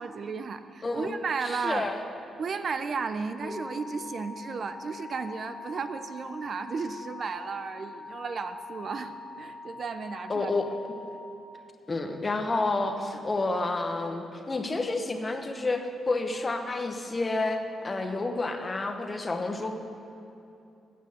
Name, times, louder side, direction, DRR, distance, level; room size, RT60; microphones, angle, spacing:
voice 1, 0.0-1.9 2.4-10.5, right 5 dB, 45° right, 10 dB, 0.5 m, -34 dB
voice 2, 0.8-1.1 1.4-2.0 3.4-3.6 10.3-11.0 11.9-15.8 16.1-19.7, left 3 dB, 25° left, 5 dB, 0.9 m, -30 dB
sound 1, 3.4-11.3, left 3 dB, 5° right, 0.9 m, -43 dB
8.9 x 8.7 x 7.8 m, 2.7 s
cardioid pair, 130°, 0 cm